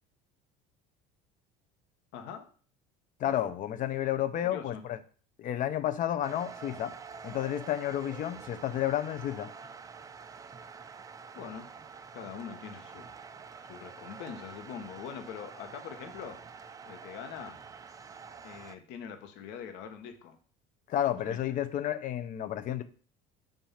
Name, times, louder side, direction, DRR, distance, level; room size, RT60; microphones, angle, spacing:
voice 1, 2.1-2.5 3.2-3.5 4.4-4.8 11.3-11.7 12.1-13.0 13.7-16.4 16.9-17.6 18.4-20.4 21.1-21.4, left 7 dB, 75° left, 1.1 m, -43 dB
voice 2, 3.2-5.0 5.4-6.9 7.2-9.5 20.9-22.8, left 11 dB, 45° left, 0.6 m, -31 dB
sound 1, 6.2-18.8, right 5 dB, 20° right, 0.3 m, -47 dB
7.2 x 2.6 x 5.7 m
cardioid pair, 125°, 19 cm